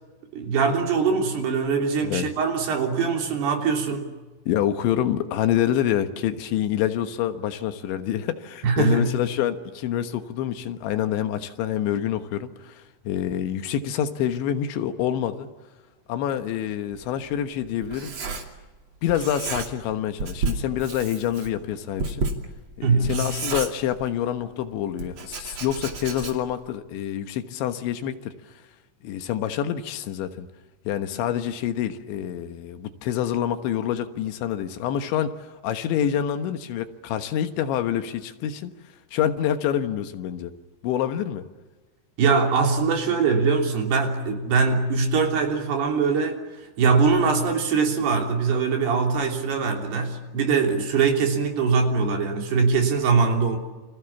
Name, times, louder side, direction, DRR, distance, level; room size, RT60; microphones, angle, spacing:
voice 1, 0.3-4.1 8.6-9.1 22.8-23.2 42.2-46.4 46.8-53.6, right 5 dB, 60° right, 3 dB, 5.1 m, -22 dB
voice 2, 4.5-15.5 16.1-18.2 19.0-22.2 22.8-28.3 29.0-30.5 30.9-38.7 39.1-40.5 40.8-41.5, left 10 dB, 75° left, 9 dB, 3.5 m, -27 dB
Writing, 16.9-18.8 19.1-19.9 20.2-24.4 25.0-26.6, right 4 dB, 40° right, 3.1 m, -32 dB
29.5 x 25.5 x 7.2 m, 1.3 s
omnidirectional pair, 5.5 m